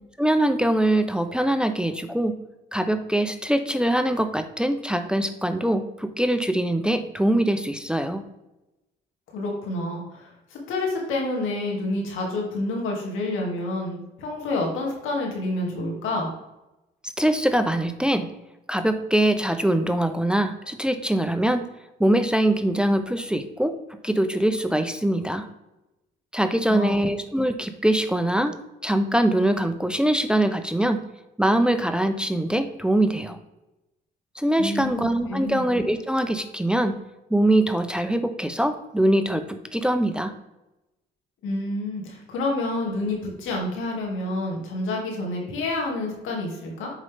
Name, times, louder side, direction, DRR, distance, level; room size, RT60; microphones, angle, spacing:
voice 1, 0.2-2.4 2.7-8.2 17.2-18.3 18.7-21.7 22.0-23.8 24.0-25.5 26.3-28.5 28.8-31.0 31.4-33.4 34.3-36.9 37.3-40.3, right 1 dB, 5° right, 9 dB, 0.6 m, -23 dB
voice 2, 9.3-16.3 26.7-27.1 34.6-35.6 41.4-46.9, left 2 dB, 90° left, 0 dB, 2.3 m, -28 dB
7.3 x 5.2 x 3.5 m, 0.96 s
cardioid pair, 90°, 20 cm